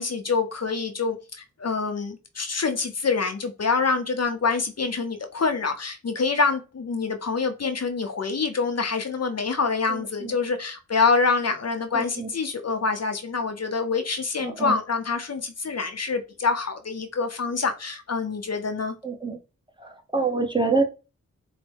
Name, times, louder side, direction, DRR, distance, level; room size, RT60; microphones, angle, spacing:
voice 1, 0.0-18.9, left 4 dB, 50° left, 0.6 m, -26 dB
voice 2, 9.9-10.3 11.9-12.3 14.4-14.7 19.0-19.4 19.8-20.8, right 3 dB, 15° right, 0.8 m, -26 dB
4.4 x 2.1 x 3.4 m
cardioid pair, 45°, 32 cm